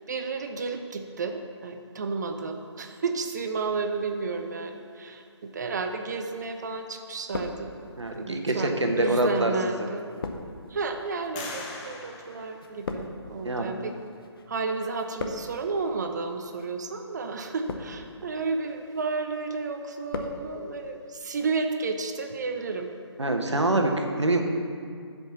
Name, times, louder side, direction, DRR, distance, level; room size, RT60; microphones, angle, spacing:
voice 1, 0.0-7.7 8.1-10.0 10.7-13.9 14.5-22.9, right 4 dB, 40° right, 5 dB, 0.6 m, -32 dB
sound 1, 6.2-6.8 7.1-8.1 8.8-14.5 14.7-15.7 16.4-16.7 17.4-18.2 18.6-19.1 19.5-20.4 20.7-20.8, left 3 dB, 55° left, 0.7 m, -39 dB
voice 2, 8.0-9.5 13.4-13.7 23.2-24.4, right 2 dB, 85° right, 3 dB, 1.1 m, -25 dB
sound 2, 9.1-9.2 9.8-10.4 11.3-13.3, left 3 dB, 15° left, 0.6 m, -42 dB
7.3 x 5.2 x 7.0 m, 2.2 s
figure-of-eight pair, 150°, 14 cm